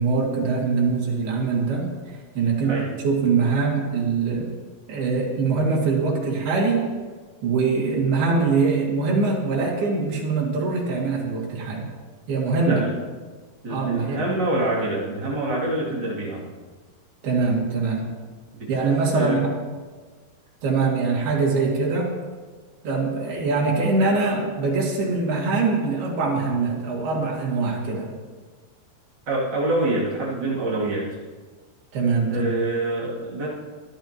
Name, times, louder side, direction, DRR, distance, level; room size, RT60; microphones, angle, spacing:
voice 1, 0.0-1.9 2.4-2.8 3.0-4.5 4.9-6.9 7.4-11.9 12.3-12.8 13.7-14.2 17.2-18.1 18.7-19.5 20.6-22.1 22.8-28.1 31.9-32.5, right 4 dB, 80° right, -3 dB, 4.4 m, -23 dB
voice 2, 12.6-12.9 13.6-16.4 18.5-19.4 29.3-31.2 32.3-33.5, right 1 dB, 30° right, -4 dB, 2.8 m, -26 dB
24.5 x 11.5 x 3.0 m, 1.4 s
omnidirectional pair, 4.4 m